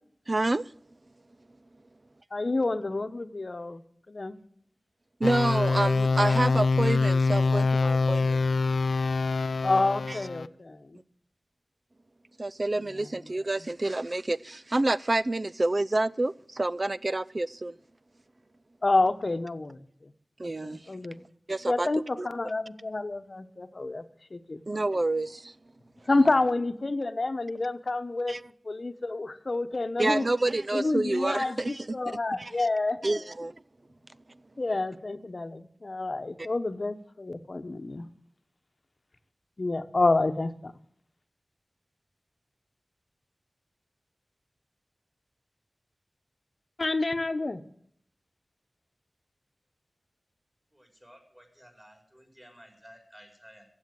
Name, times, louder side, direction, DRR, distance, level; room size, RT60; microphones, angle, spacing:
voice 1, 0.3-0.6 5.2-8.5 10.1-10.2 12.4-17.8 20.4-20.8 21.5-22.3 24.7-25.5 28.3-28.4 30.0-32.7 33.0-33.5, right 2 dB, 40° right, 0.5 m, -28 dB
voice 2, 2.3-3.8 4.1-4.4 9.6-11.0 18.8-19.8 20.4-21.2 21.7-24.0 24.3-24.6 26.1-28.4 28.6-30.3 30.7-33.0 34.6-38.1 39.6-40.7 46.8-47.6, left 2 dB, 50° left, 1.1 m, -28 dB
sound 1, 5.2-10.5, left 3 dB, 90° left, 0.4 m, -25 dB
voice 3, 50.7-53.7, equal, 15° right, 4.6 m, -54 dB
15.5 x 8.2 x 7.7 m
wide cardioid pair, 70°, 0 cm